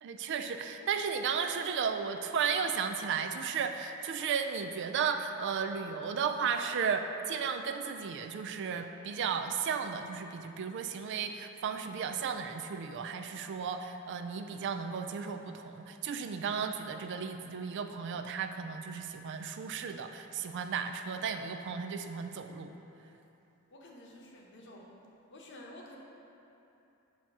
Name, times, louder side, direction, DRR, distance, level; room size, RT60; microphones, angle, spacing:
voice 1, 0.0-22.7, right 6 dB, 55° right, 7 dB, 0.3 m, -34 dB
voice 2, 23.7-25.0 25.3-26.0, left 1 dB, 55° left, -1 dB, 0.8 m, -51 dB
7.4 x 2.8 x 5.9 m, 2.9 s
head